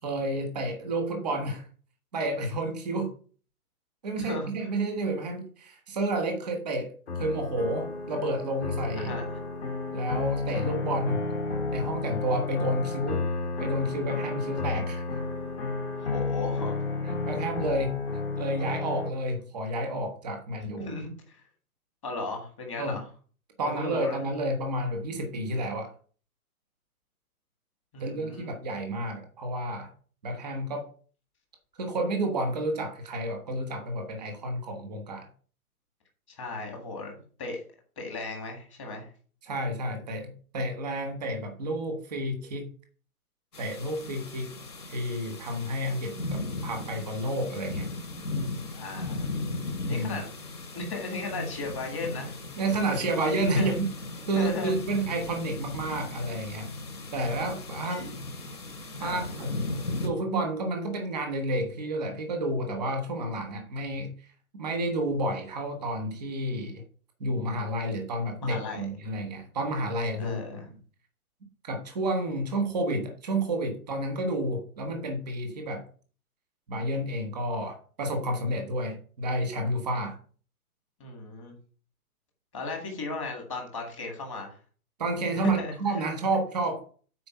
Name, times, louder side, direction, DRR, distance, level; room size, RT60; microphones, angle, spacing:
voice 1, 0.0-1.7 2.1-3.1 4.0-6.9 7.2-9.2 9.9-11.3 11.7-13.3 13.6-15.2 17.0-18.0 18.3-20.9 22.8-23.0 23.6-25.9 28.0-29.9 30.2-30.9 31.7-35.3 39.4-42.7 43.6-44.5 44.9-47.9 49.8-50.2 52.6-53.9 54.3-56.7 57.1-58.0 59.0-59.5 60.0-66.8 67.2-70.6 71.6-75.8 76.7-80.2 85.0-86.8, right 1 dB, ahead, 4 dB, 0.8 m, -30 dB
voice 2, 4.2-4.5 8.9-9.4 16.0-16.8 20.8-21.4 22.0-23.0 23.6-24.2 27.9-28.5 36.3-37.6 38.0-39.1 48.7-49.3 49.8-50.3 50.7-52.3 53.6-53.8 54.3-54.8 57.8-58.1 59.0-59.3 68.4-68.9 70.2-70.7 81.0-81.5 82.5-84.6 85.4-86.0, left 3 dB, 20° left, 1 dB, 1.7 m, -36 dB
sound 1, 7.1-19.1, left 3 dB, 45° left, 2.0 m, -31 dB
sound 2, 43.5-60.1, left 2 dB, 80° left, 4.4 m, -37 dB
9.4 x 4.4 x 5.6 m, 0.42 s
hypercardioid pair, 175°, 45 cm